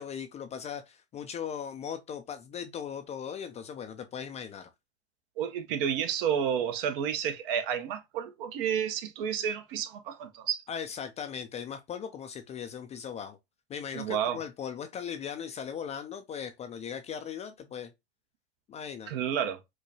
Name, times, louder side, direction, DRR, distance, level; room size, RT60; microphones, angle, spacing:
voice 1, 0.0-4.7 10.7-13.4 13.7-17.9 18.7-19.1, left 8 dB, 20° left, 0.4 m, -38 dB
voice 2, 5.4-10.6 13.9-14.4 19.1-19.6, right 8 dB, 55° right, 0.8 m, -30 dB
4.7 x 2.2 x 2.7 m
hypercardioid pair, 105°, 33 cm